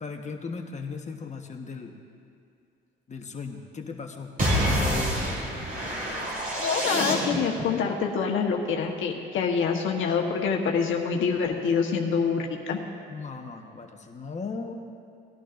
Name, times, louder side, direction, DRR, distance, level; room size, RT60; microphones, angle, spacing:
voice 1, 0.0-1.9 3.1-5.1 13.1-14.8, left 4 dB, 35° left, 3 dB, 1.2 m, -37 dB
sound 1, 4.4-7.6, equal, 45° right, 3.1 m, -27 dB
voice 2, 6.6-12.8, left 5 dB, 80° left, 1 dB, 1.2 m, -26 dB
19.0 x 11.5 x 2.6 m, 2.4 s
cardioid pair, 90°, 20 cm